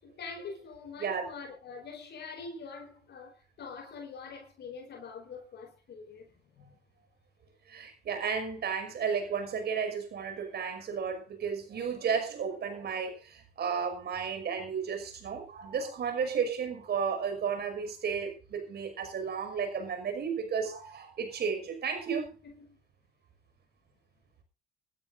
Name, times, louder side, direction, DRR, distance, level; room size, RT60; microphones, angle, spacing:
voice 1, 0.0-6.8 22.4-22.8, left 4 dB, 60° left, 5.1 m, -45 dB
voice 2, 7.7-22.3, right 6 dB, 60° right, 5.6 m, -33 dB
23.5 x 13.0 x 2.6 m
supercardioid pair, 65°, 19 cm